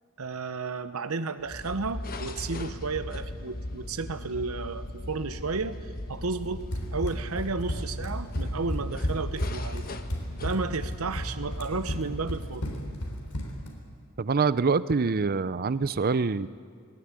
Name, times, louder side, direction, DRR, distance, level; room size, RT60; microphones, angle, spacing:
voice 1, 0.2-5.8 6.1-9.8 10.4-12.7, right 4 dB, 75° right, 11 dB, 1.0 m, -32 dB
sound 1, 1.4-13.6, left 1 dB, 45° left, 1.2 m, -38 dB
Run, 6.7-13.7, equal, 85° left, 3.7 m, -33 dB
voice 2, 14.2-16.5, right 4 dB, 45° right, 17 dB, 0.6 m, -25 dB
19.5 x 19.0 x 9.7 m, 2.1 s
head